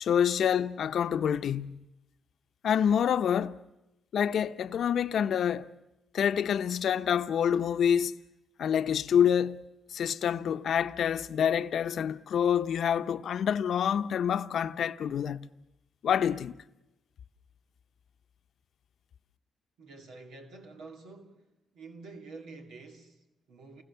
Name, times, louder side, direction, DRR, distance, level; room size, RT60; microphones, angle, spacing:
voice 1, 0.0-1.8 2.6-3.6 4.1-5.7 6.1-8.2 8.6-9.6 9.9-15.5 16.0-16.5, left 8 dB, 70° left, 0.8 m, -27 dB
voice 2, 19.8-21.4 21.7-23.8, right 3 dB, 85° right, 2.2 m, -48 dB
29.0 x 20.5 x 6.9 m
cardioid pair, 65°, 0 cm